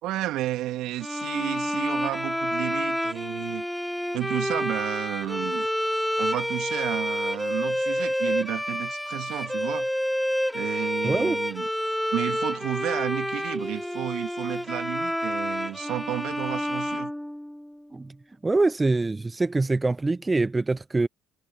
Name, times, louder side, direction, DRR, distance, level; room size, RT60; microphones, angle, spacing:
voice 1, 0.0-3.7 4.1-5.7 6.2-9.9 10.5-11.7 12.1-17.1, right 15 dB, 65° right, 2.6 m, -32 dB
sound 1, 1.0-17.8, equal, 5° left, 1.6 m, -29 dB
voice 2, 11.0-11.4 17.9-18.1 18.4-21.1, right 3 dB, 20° right, 0.6 m, -24 dB
hypercardioid pair, 65°, 0 cm